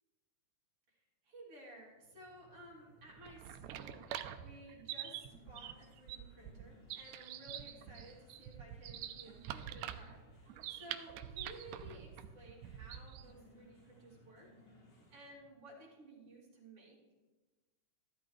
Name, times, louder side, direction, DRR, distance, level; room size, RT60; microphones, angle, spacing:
voice 1, 0.9-14.5 15.1-17.0, right 1 dB, 45° right, -4 dB, 3.6 m, -56 dB
sound 1, 1.8-15.6, equal, 65° left, 6.4 m, -66 dB
sound 2, 3.1-13.3, right 11 dB, 80° right, 1.9 m, -46 dB
sound 3, 5.2-15.3, left 2 dB, 85° left, 4.6 m, -67 dB
14.0 x 12.5 x 3.2 m, 1.2 s
omnidirectional pair, 3.7 m